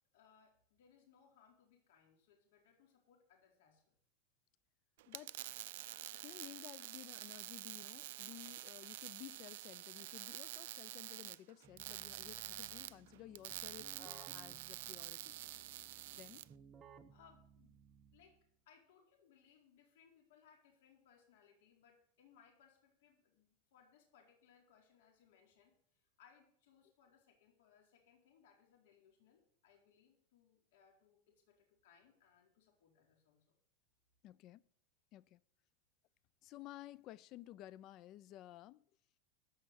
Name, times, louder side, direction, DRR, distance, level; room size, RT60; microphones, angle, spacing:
voice 1, 0.1-4.0 17.1-17.8 18.1-18.4 18.7-33.6, left 7 dB, 75° left, 4.1 m, -68 dB
sound 1, 5.0-16.5, right 16 dB, 70° right, 0.4 m, -48 dB
voice 2, 5.1-5.4 6.1-15.3 16.1-16.5 34.2-34.6 35.1-35.4 36.4-38.8, left 15 dB, 40° left, 0.4 m, -55 dB
Keyboard (musical), 11.6-18.5, right 6 dB, 25° right, 0.9 m, -62 dB
14.0 x 5.8 x 7.5 m
supercardioid pair, 145°, 0 cm